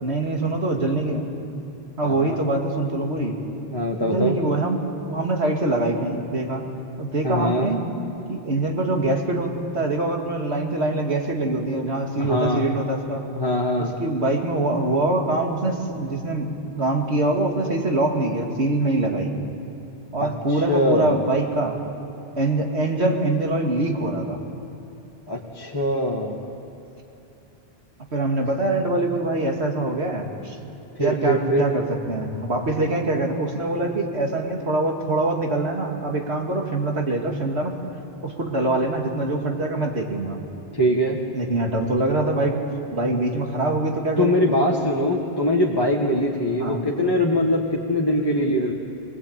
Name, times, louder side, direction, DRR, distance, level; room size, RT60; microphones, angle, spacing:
voice 1, 0.0-1.3 2.0-3.4 4.0-6.7 7.0-7.8 8.3-13.2 13.8-19.3 20.1-21.8 22.4-24.4 28.1-30.6 31.0-37.8 38.2-40.4 41.3-44.5 46.6-46.8, right 2 dB, 90° right, 2 dB, 2.8 m, -24 dB
voice 2, 2.0-2.4 3.7-4.4 7.2-7.7 12.2-12.6 13.3-13.9 20.2-20.3 20.7-21.2 25.3-26.4 31.0-31.7 40.7-41.2 44.2-48.7, equal, 20° left, -2 dB, 1.7 m, -22 dB
23.5 x 20.0 x 8.9 m, 3.0 s
omnidirectional pair, 1.1 m